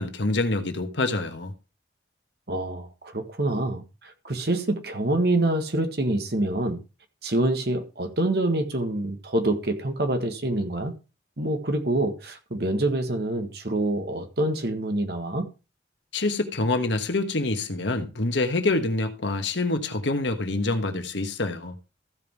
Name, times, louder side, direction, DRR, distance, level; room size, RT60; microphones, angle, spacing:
voice 1, 0.0-1.5 16.1-21.8, left 2 dB, 85° left, 1.4 m, -26 dB
voice 2, 2.5-6.8 7.2-10.9 11.4-15.5, right 1 dB, 60° right, 1.7 m, -26 dB
15.0 x 5.4 x 4.6 m
head